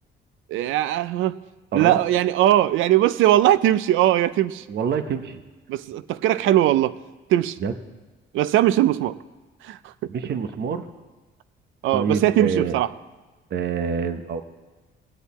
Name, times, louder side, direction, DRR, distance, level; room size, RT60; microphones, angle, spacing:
voice 1, 0.5-1.4 1.7-4.6 5.7-7.0 7.3-7.6 8.3-9.2 9.6-9.8 11.8-12.9, right 13 dB, 85° right, 16 dB, 0.5 m, -20 dB
voice 2, 4.7-5.4 7.6-7.7 10.1-10.9 11.9-12.8 13.5-14.4, right 6 dB, 60° right, 9 dB, 0.8 m, -26 dB
18.5 x 8.2 x 4.2 m, 1.2 s
cardioid pair, 90°, 20 cm